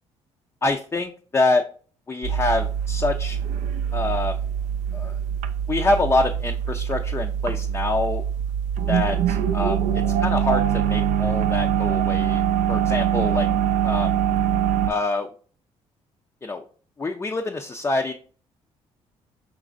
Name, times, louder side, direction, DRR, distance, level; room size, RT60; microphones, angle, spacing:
voice 1, 0.6-1.6 2.1-3.4 3.9-4.4 4.9-5.2 5.7-8.2 8.9-12.4 12.7-13.5 13.8-14.1 14.9-15.3 16.4-16.6 17.0-18.1, left 2 dB, 20° left, 3 dB, 0.4 m, -25 dB
sound 1, 2.2-14.9, right 9 dB, 75° right, 0.4 m, -23 dB
5.0 x 3.2 x 2.5 m, 0.41 s
supercardioid pair, 75°, 12 cm